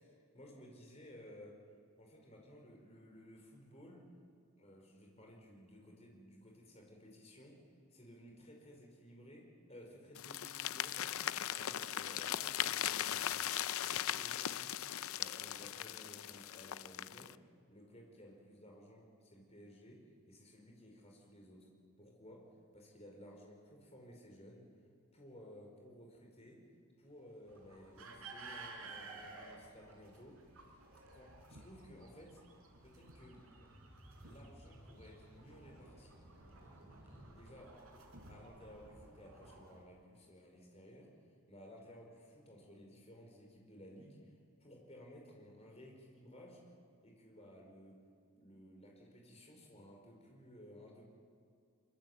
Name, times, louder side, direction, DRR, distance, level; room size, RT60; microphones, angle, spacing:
voice 1, 0.0-1.6 2.0-4.1 4.6-7.6 7.9-13.2 13.6-14.8 15.1-17.4 17.7-21.7 22.0-24.7 25.1-30.8 31.1-32.4 32.8-33.5 34.2-36.3 37.3-41.2 41.5-46.7 47.0-48.0 48.3-51.1, equal, 30° left, 0 dB, 4.9 m, -57 dB
sound 1, 10.2-17.3, left 11 dB, 75° left, 0.5 m, -39 dB
sound 2, 27.0-37.3, right 1 dB, 10° right, 7.5 m, -62 dB
sound 3, 27.5-39.8, right 3 dB, 75° right, 4.2 m, -55 dB
23.5 x 23.5 x 8.1 m, 2.3 s
head